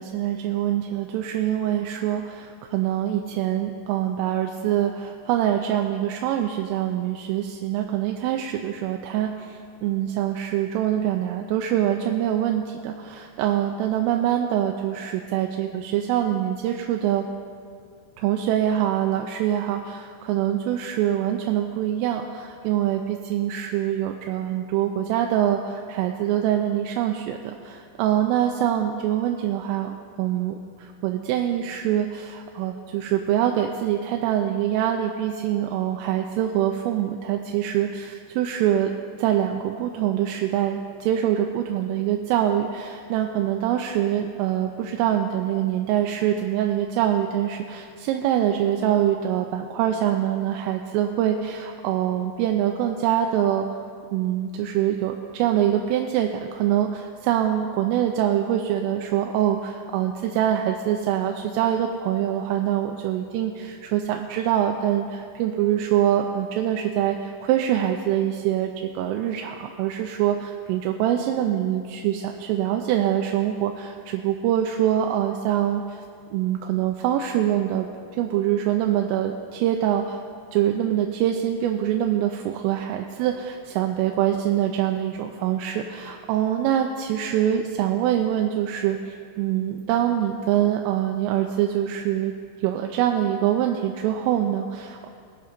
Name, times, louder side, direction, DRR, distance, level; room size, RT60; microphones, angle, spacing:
voice 1, 0.0-17.3 18.2-38.9 39.2-53.7 54.1-76.0 76.3-77.9 78.1-80.2 80.5-92.3 92.6-95.1, right 11 dB, 90° right, 3 dB, 3.2 m, -24 dB
19.5 x 6.9 x 5.1 m, 2.3 s
omnidirectional pair, 5.7 m